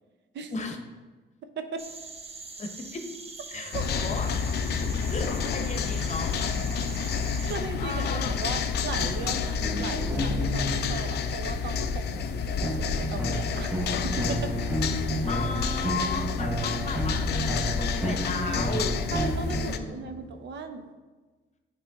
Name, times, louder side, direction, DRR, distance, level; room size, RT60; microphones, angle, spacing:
sound 1, 1.8-7.6, right 3 dB, 30° right, 0.7 m, -43 dB
voice 1, 2.6-3.1 3.5-4.3 5.0-6.7 7.3-8.3 15.3-18.9 19.5-20.1, left 3 dB, 35° left, 4 dB, 0.9 m, -35 dB
sound 2, 3.7-19.8, left 6 dB, 55° left, 0.4 m, -29 dB
voice 2, 7.5-13.8 14.0-14.5 19.1-20.8, right 5 dB, 65° right, 7 dB, 0.6 m, -37 dB
sound 3, 9.6-11.2 12.6-20.3, right 1 dB, 5° right, 1.2 m, -31 dB
9.0 x 3.3 x 3.6 m, 1.3 s
cardioid pair, 90°, 20 cm